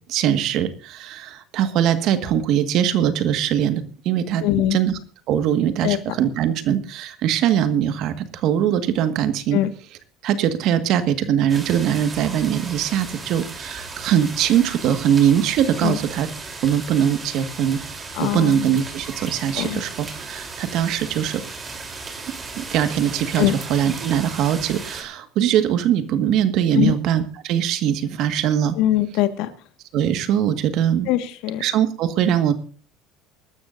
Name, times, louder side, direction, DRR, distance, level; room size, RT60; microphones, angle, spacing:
voice 1, 0.1-4.4 4.7-5.0 5.3-9.6 10.2-16.3 16.6-17.8 18.2-21.4 22.3-28.8 29.9-31.1 31.6-32.5, right 9 dB, 60° right, 10 dB, 1.7 m, -21 dB
voice 2, 4.4-4.8 5.8-6.0 9.5-9.7 15.8-16.0 18.1-18.6 19.6-19.8 23.4-23.5 26.7-26.9 28.8-29.5 31.1-31.6, left 14 dB, 70° left, 10 dB, 1.7 m, -21 dB
sound 1, 11.5-25.0, right 4 dB, 25° right, 3.5 m, -35 dB
24.0 x 12.5 x 2.6 m, 0.40 s
supercardioid pair, 110°, 0 cm